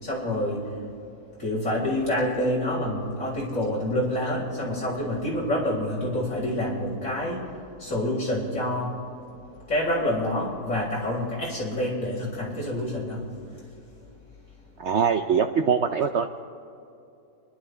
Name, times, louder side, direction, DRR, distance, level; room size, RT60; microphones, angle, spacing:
voice 1, 0.0-0.6 1.4-7.4 7.8-9.0 9.7-13.2, left 1 dB, 50° left, -6 dB, 4.6 m, -27 dB
voice 2, 14.8-16.4, right 6 dB, 70° right, 6 dB, 0.6 m, -23 dB
29.5 x 11.5 x 3.3 m, 2.7 s
omnidirectional pair, 1.8 m